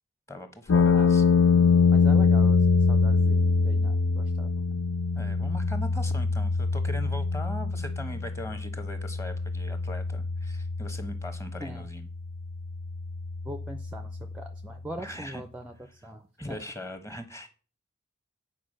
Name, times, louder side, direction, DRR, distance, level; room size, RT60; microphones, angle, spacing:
voice 1, 0.3-1.2 5.1-12.1 15.0-15.4 16.4-17.5, left 1 dB, 15° left, 8 dB, 1.1 m, -40 dB
sound 1, 0.7-14.7, left 4 dB, 85° left, 0.5 m, -25 dB
voice 2, 1.9-2.6 2.9-4.5 11.6-11.9 13.4-16.6, right 1 dB, 5° right, 7 dB, 0.5 m, -41 dB
9.1 x 4.6 x 6.4 m, 0.38 s
head